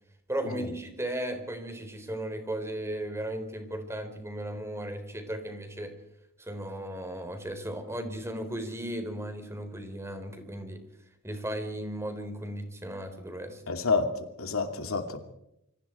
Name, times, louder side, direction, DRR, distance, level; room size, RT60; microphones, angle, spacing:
voice 1, 0.3-5.9 6.4-10.8 11.2-13.6, right 1 dB, 15° right, 6 dB, 3.9 m, -36 dB
voice 2, 13.7-14.1 14.4-15.2, left 4 dB, 80° left, 6 dB, 2.8 m, -28 dB
28.5 x 25.0 x 4.5 m, 0.80 s
head